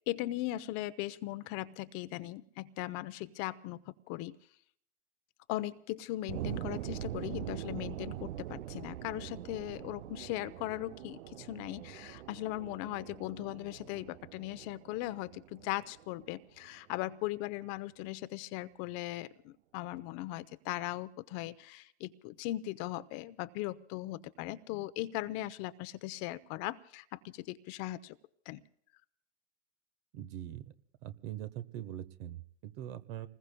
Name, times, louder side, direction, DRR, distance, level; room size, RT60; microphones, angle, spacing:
voice 1, 0.1-4.4 5.5-28.2 28.5-28.6, left 16 dB, 50° left, 14 dB, 0.8 m, -39 dB
sound 1, 6.3-17.1, right 12 dB, 75° right, 0.6 m, -43 dB
voice 2, 30.1-30.6 31.0-33.3, right 12 dB, 55° right, 12 dB, 1.2 m, -42 dB
29.5 x 20.5 x 2.2 m, 0.63 s
hypercardioid pair, 90°, 35 cm